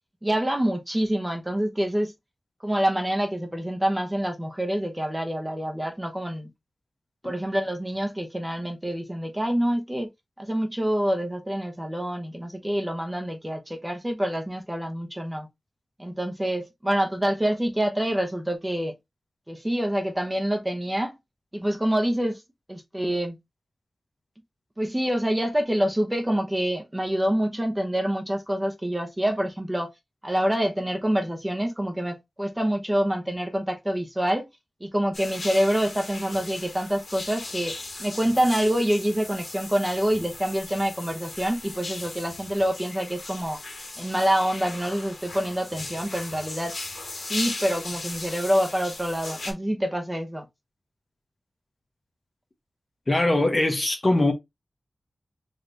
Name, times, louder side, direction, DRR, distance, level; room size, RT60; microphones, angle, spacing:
voice 1, 0.2-2.1 2.6-6.5 7.2-10.1 10.4-15.5 16.0-18.9 19.5-21.2 21.5-22.4 22.7-23.4 24.8-29.9 30.2-34.5 34.8-37.7 38.0-43.6 44.0-46.8 47.3-50.4, equal, 15° right, 0.9 m, -26 dB
sound 1, 35.1-49.5, left 2 dB, 60° left, 1.8 m, -38 dB
voice 2, 53.1-54.3, left 2 dB, 30° left, 1.0 m, -21 dB
3.4 x 3.0 x 3.8 m
wide cardioid pair, 100°, 0 cm